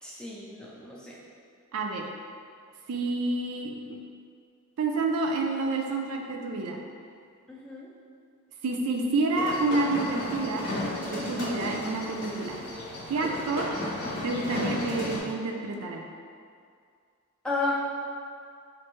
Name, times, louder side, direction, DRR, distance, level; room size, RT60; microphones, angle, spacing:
voice 1, 0.0-1.2 7.5-7.9 17.4-17.7, left 3 dB, 5° left, -6 dB, 0.4 m, -33 dB
voice 2, 1.7-2.1 2.9-4.0 4.8-6.8 8.6-10.7 11.1-12.6 13.1-13.7 14.2-16.0, right 3 dB, 75° right, 1 dB, 0.4 m, -29 dB
sound 1, 9.3-15.2, left 1 dB, 75° left, 0.9 m, -34 dB
4.4 x 2.5 x 3.0 m, 2.2 s
head